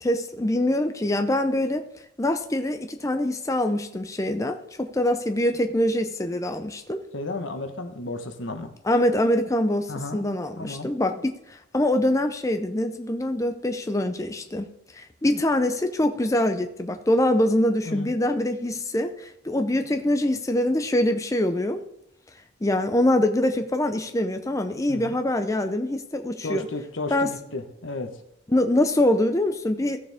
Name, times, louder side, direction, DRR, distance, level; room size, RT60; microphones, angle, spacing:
voice 1, 0.0-1.9 2.2-7.0 8.8-14.7 14.9-21.8 22.6-26.7 27.1-27.3 28.5-30.0, left 1 dB, 15° left, 7 dB, 0.5 m, -24 dB
voice 2, 7.1-8.7 9.9-10.2 10.6-10.9 17.9-18.1 24.9-25.2 26.4-28.2, left 2 dB, 80° left, 7 dB, 1.2 m, -33 dB
15.0 x 6.8 x 3.5 m, 0.82 s
head